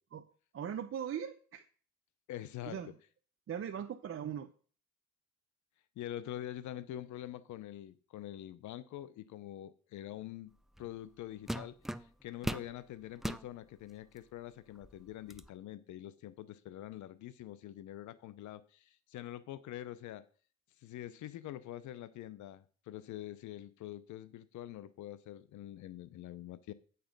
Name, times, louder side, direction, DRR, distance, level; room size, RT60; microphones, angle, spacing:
voice 1, 0.5-1.6 2.6-2.9 3.5-4.5, right 8 dB, 45° right, 0.8 m, -39 dB
voice 2, 2.3-2.9 6.0-10.5 10.8-20.3 20.8-26.7, left 13 dB, 75° left, 0.7 m, -45 dB
sound 1, 10.8-11.0 11.5-12.7 13.2-13.5 14.2-14.3 14.7-15.5, equal, ahead, 0.3 m, -39 dB
8.7 x 6.8 x 5.3 m
cardioid pair, 90°, 30 cm